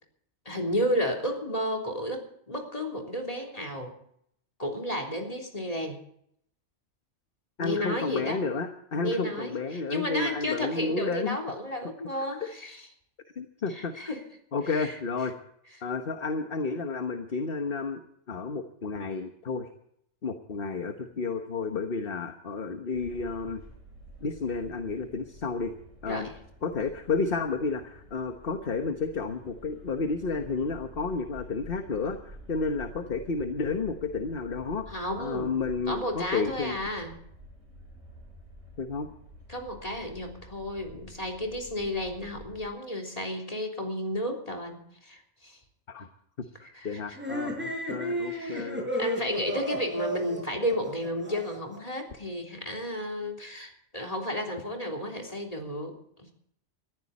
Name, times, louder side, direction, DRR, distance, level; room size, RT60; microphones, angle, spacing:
voice 1, 0.5-3.9 4.6-6.0 7.6-8.4 9.0-12.9 13.7-14.2 14.7-15.0 26.1-26.3 34.9-35.5 35.9-37.1 39.5-45.6 46.7-47.2 48.2-48.7 49.0-56.3, equal, 25° left, 4 dB, 3.6 m, -32 dB
voice 2, 7.6-11.4 13.4-14.1 14.5-15.3 15.8-18.0 18.3-19.7 20.2-23.6 24.2-25.7 26.0-26.3 26.6-34.9 35.2-36.8 38.8-39.1 45.9-46.1 46.4-48.9, left 4 dB, 45° left, 6 dB, 1.3 m, -31 dB
sound 1, 22.9-42.7, equal, 60° right, 5.6 m, -49 dB
sound 2, 47.1-51.8, equal, 10° right, 6.3 m, -33 dB
21.0 x 14.5 x 4.2 m, 0.72 s
omnidirectional pair, 1.4 m